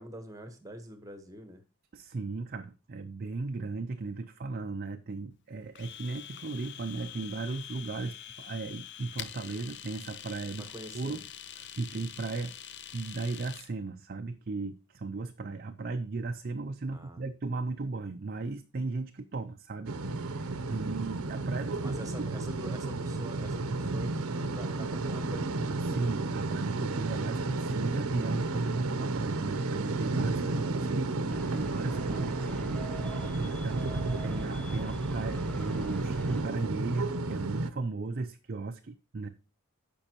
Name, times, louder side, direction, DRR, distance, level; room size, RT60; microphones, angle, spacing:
voice 1, 0.0-1.6 10.6-11.1 16.9-17.2 21.8-25.5 30.3-30.8, right 1 dB, 15° right, 1.1 m, -45 dB
voice 2, 1.9-10.7 10.9-11.2 11.6-12.5 12.9-21.9 25.9-39.3, right 3 dB, 45° right, 0.5 m, -36 dB
Domestic sounds home sounds, 5.8-13.7, left 10 dB, 50° left, 0.5 m, -45 dB
sound 1, 19.9-37.7, right 3 dB, 80° right, 0.8 m, -32 dB
sound 2, 31.3-36.4, equal, 5° left, 0.5 m, -42 dB
15.5 x 5.3 x 2.9 m
head